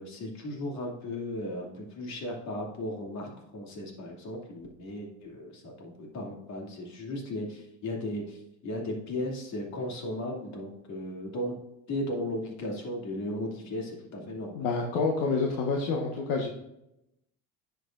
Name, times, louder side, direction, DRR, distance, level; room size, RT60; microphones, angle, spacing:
voice 1, 0.0-11.5 11.9-14.7, left 1 dB, 55° left, -1 dB, 2.7 m, -36 dB
voice 2, 14.5-16.5, left 4 dB, 75° left, 0 dB, 1.4 m, -28 dB
10.0 x 6.8 x 2.6 m, 0.85 s
cardioid pair, 115°, 34 cm